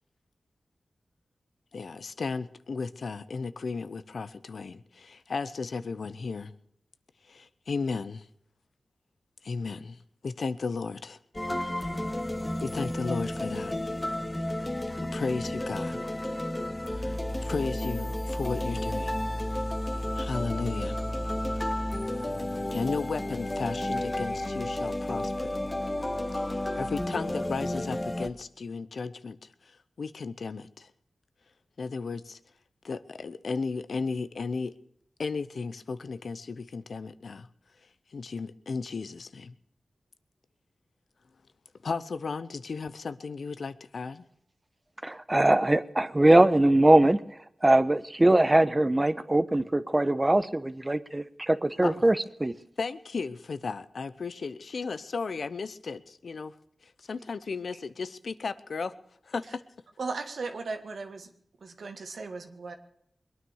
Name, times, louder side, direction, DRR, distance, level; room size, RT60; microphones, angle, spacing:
voice 1, 1.7-6.5 7.3-8.3 9.4-10.0 10.2-11.2 12.6-13.7 15.1-16.0 16.9-19.2 19.5-19.6 20.2-21.0 22.7-25.6 26.4-30.9 31.8-32.4 32.8-34.7 35.2-37.5 38.1-39.5 41.8-44.2 51.8-51.9 52.8-56.5 56.8-58.9 59.3-59.6, left 4 dB, 75° left, 14 dB, 0.8 m, -34 dB
sound 1, 11.3-28.3, left 1 dB, 20° left, 1.5 m, -32 dB
voice 2, 45.0-47.2 47.6-52.5, right 1 dB, 25° right, 13 dB, 1.0 m, -22 dB
voice 3, 60.0-61.3 61.6-62.8, right 4 dB, 80° right, 7 dB, 1.7 m, -36 dB
21.5 x 9.6 x 6.4 m, 0.72 s
cardioid pair, 45°, 0 cm